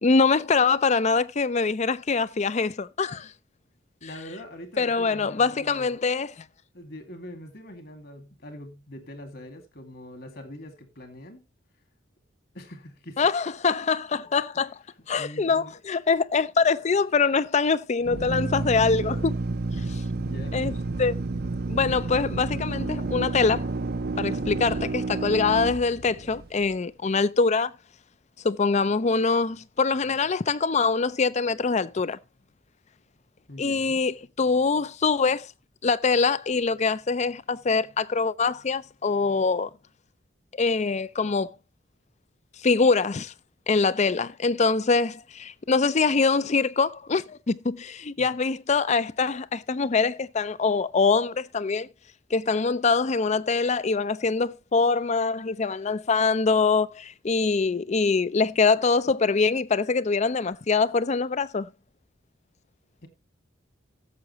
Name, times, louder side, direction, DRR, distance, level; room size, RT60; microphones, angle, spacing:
voice 1, 0.0-3.3 4.8-6.4 13.2-14.8 15.1-19.3 19.9-20.0 20.5-20.7 21.0-21.2 21.7-23.6 24.2-27.7 28.4-32.2 33.6-35.5 35.8-39.7 40.5-41.5 42.6-43.3 43.7-51.9 52.3-61.7, left 4 dB, 35° left, 0.5 m, -24 dB
voice 2, 4.0-6.0 6.7-11.4 12.5-13.2 15.2-15.7 18.2-18.4 19.8-20.6 33.5-34.0 48.2-48.3 63.0-63.1, left 1 dB, 55° left, 2.2 m, -43 dB
Drill, 18.0-26.6, right 3 dB, 55° right, 0.6 m, -30 dB
16.5 x 7.3 x 2.9 m
head